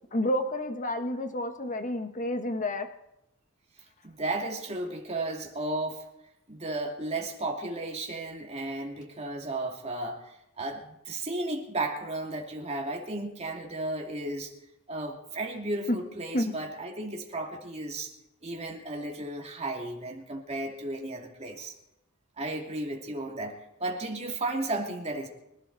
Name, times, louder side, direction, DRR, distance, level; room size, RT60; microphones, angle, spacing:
voice 1, 0.1-2.9 15.9-16.0 16.3-16.5, left 1 dB, 40° left, 7 dB, 1.5 m, -29 dB
voice 2, 4.0-6.0 6.5-14.5 14.9-18.1 18.4-21.7 22.4-25.3, right 2 dB, 30° right, 1 dB, 2.7 m, -34 dB
24.0 x 12.0 x 4.1 m, 0.84 s
head